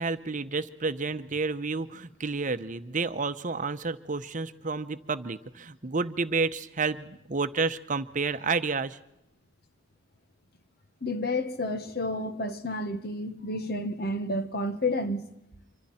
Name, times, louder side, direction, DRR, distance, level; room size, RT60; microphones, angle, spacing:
voice 1, 0.0-9.0, right 4 dB, 45° right, 0.9 m, -30 dB
voice 2, 11.0-15.3, left 1 dB, 60° left, 1.7 m, -30 dB
26.0 x 25.0 x 4.4 m
head